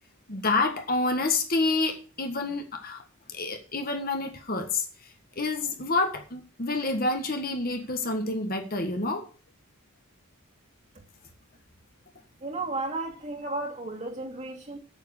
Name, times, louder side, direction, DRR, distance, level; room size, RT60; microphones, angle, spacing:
voice 1, 0.3-3.0 3.3-4.9 5.3-9.2, left 3 dB, 40° left, 1.6 m, -28 dB
voice 2, 12.4-14.8, right 2 dB, 30° right, 2.3 m, -33 dB
8.9 x 7.6 x 7.2 m
head